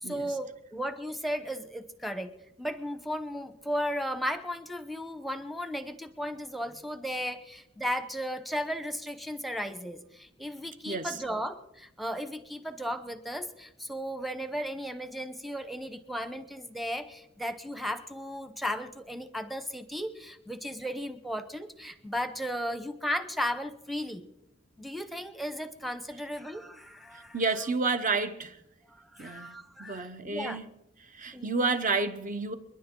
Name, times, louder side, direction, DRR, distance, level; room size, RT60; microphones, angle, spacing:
voice 1, 0.0-24.3 24.8-27.7 28.9-30.6 31.3-31.5, equal, ahead, 0.9 m, -35 dB
voice 2, 27.3-28.5 29.2-30.6 31.2-32.5, right 4 dB, 40° right, 1.1 m, -30 dB
29.5 x 10.5 x 3.9 m
head